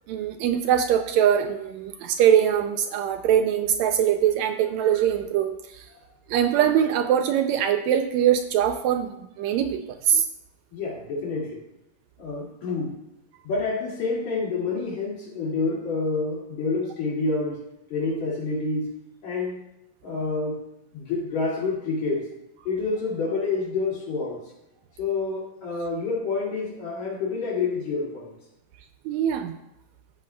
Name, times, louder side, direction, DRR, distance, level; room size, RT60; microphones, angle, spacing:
voice 1, 0.1-5.9 6.3-10.2 29.0-29.6, right 9 dB, 80° right, 8 dB, 1.7 m, -22 dB
voice 2, 10.7-11.6 12.2-13.0 13.4-17.6 17.9-18.9 19.2-19.6 20.0-20.6 20.9-22.3 22.6-24.4 25.0-28.3, left 3 dB, 65° left, -4 dB, 3.6 m, -28 dB
14.5 x 7.7 x 2.3 m, 0.86 s
omnidirectional pair, 3.4 m